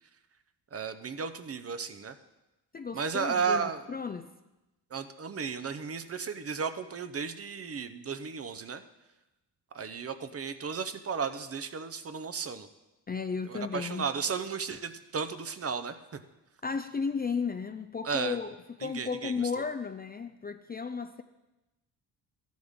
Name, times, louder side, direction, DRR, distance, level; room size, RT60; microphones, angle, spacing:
voice 1, 0.7-2.2 2.9-3.8 4.9-8.8 9.7-12.7 13.4-16.0 18.0-18.4 18.8-19.5, right 5 dB, 35° right, 10 dB, 0.8 m, -34 dB
voice 2, 2.7-4.3 13.1-14.1 16.6-21.2, left 5 dB, 25° left, 9 dB, 0.4 m, -34 dB
13.0 x 10.5 x 3.6 m, 1.0 s
cardioid pair, 90°, 43 cm